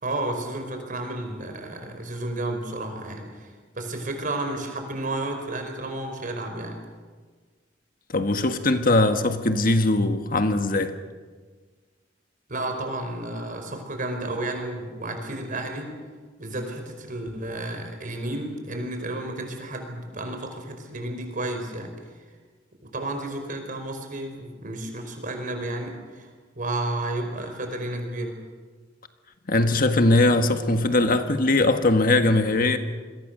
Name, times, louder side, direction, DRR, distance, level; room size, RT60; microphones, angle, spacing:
voice 1, 0.0-6.8 12.5-15.9 16.4-21.9 22.8-28.3, right 2 dB, 45° right, 5.1 m, -32 dB
voice 2, 8.1-11.0 29.5-32.8, left 2 dB, 50° left, 1.6 m, -20 dB
27.5 x 22.0 x 6.8 m
head